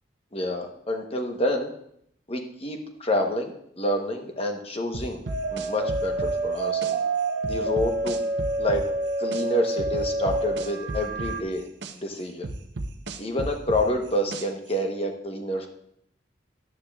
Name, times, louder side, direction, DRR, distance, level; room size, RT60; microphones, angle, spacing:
voice 1, 0.3-1.7 2.3-3.5 3.8-5.2 5.5-7.0 7.5-8.2 8.6-8.8 9.2-11.7 12.0-12.5 13.2-15.7, left 1 dB, 30° left, 4 dB, 1.0 m, -28 dB
sound 1, 4.9-6.9 7.4-9.4 9.8-11.9 12.4-14.7, right 2 dB, 60° right, 0.7 m, -33 dB
sound 2, 5.3-11.4, right 2 dB, 45° right, 1.6 m, -28 dB
11.5 x 9.4 x 2.4 m, 0.71 s
head